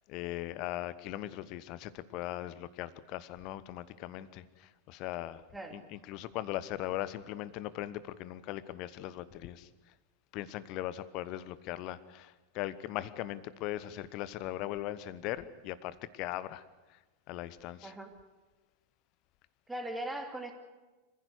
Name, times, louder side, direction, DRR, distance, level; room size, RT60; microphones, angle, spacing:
voice 1, 0.1-5.4 5.7-9.7 10.3-16.6 16.9-17.0 17.3-17.9, left 14 dB, 40° left, 17 dB, 1.2 m, -39 dB
voice 2, 17.8-18.1 19.7-20.5, right 1 dB, 5° right, 3 dB, 2.9 m, -39 dB
26.0 x 15.5 x 8.2 m, 1.2 s
figure-of-eight pair, 90°, 0 cm